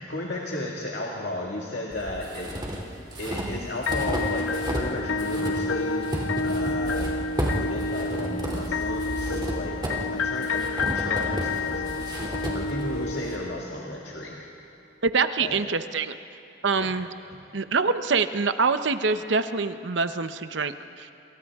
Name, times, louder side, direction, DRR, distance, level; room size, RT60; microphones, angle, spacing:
voice 1, 0.1-2.8 3.2-6.1 6.4-9.8 10.1-14.4 15.4-15.6 16.8-16.9, left 1 dB, 60° left, -2 dB, 2.0 m, -34 dB
sound 1, 1.9-4.9 5.2-13.4, equal, 25° right, 2.8 m, -32 dB
sound 2, 3.9-13.9, left 3 dB, 90° left, 0.6 m, -29 dB
voice 2, 15.0-16.2 16.6-17.1 17.5-21.1, right 4 dB, 70° right, 10 dB, 0.8 m, -25 dB
28.0 x 28.0 x 3.6 m, 2.7 s
head